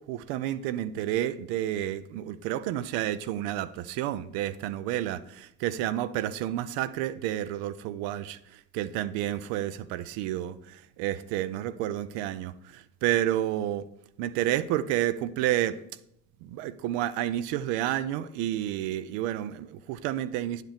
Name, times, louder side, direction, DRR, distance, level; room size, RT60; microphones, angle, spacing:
voice 1, 0.1-13.8 14.2-15.8 16.4-20.6, right 12 dB, 75° right, 0.6 m, -30 dB
9.9 x 6.5 x 3.5 m
hypercardioid pair, 60°, 44 cm